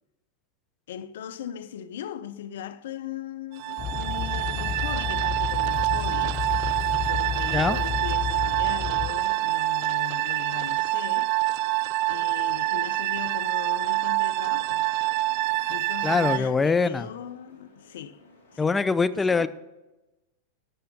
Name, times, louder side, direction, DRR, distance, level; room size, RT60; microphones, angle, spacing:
voice 1, 0.9-6.4 6.9-11.3 12.1-14.9 15.7-18.2 18.5-18.8 19.1-19.5, left 10 dB, 70° left, 0.5 m, -39 dB
sound 1, 3.6-18.6, equal, 85° left, 2.2 m, -55 dB
sound 2, 3.6-16.4, right 18 dB, 55° right, 0.3 m, -26 dB
sound 3, 3.8-9.1, left 8 dB, 30° left, 1.0 m, -31 dB
voice 2, 16.0-17.1 18.6-19.5, left 4 dB, 15° left, 0.5 m, -23 dB
11.5 x 6.9 x 5.1 m
hypercardioid pair, 95°, 0 cm